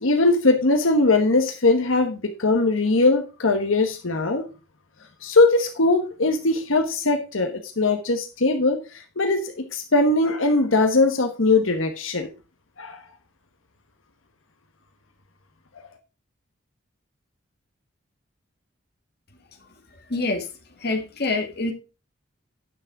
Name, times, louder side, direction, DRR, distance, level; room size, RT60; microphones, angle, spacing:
voice 1, 0.0-4.4 5.2-12.3 12.8-13.0, left 2 dB, 80° left, 5 dB, 1.3 m, -20 dB
voice 2, 20.1-20.5 20.8-21.7, left 2 dB, 50° left, 4 dB, 1.8 m, -25 dB
9.7 x 6.2 x 4.7 m, 0.31 s
head